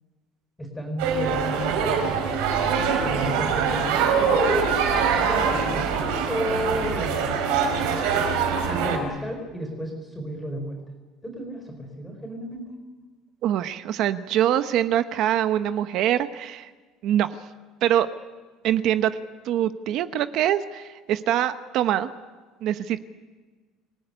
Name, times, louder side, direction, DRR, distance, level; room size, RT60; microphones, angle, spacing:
voice 1, 0.6-2.2 3.0-5.8 6.3-7.5 8.7-10.8 11.2-12.7, equal, 5° left, 3 dB, 4.5 m, -33 dB
sound 1, 1.0-9.0, right 6 dB, 85° right, 5.6 m, -23 dB
voice 2, 13.4-16.7 17.0-17.3 17.8-18.1 18.6-19.1 19.4-22.1 22.6-23.0, right 11 dB, 50° right, 11 dB, 1.0 m, -24 dB
27.0 x 18.0 x 10.0 m, 1.3 s
cardioid pair, 165°, 0 cm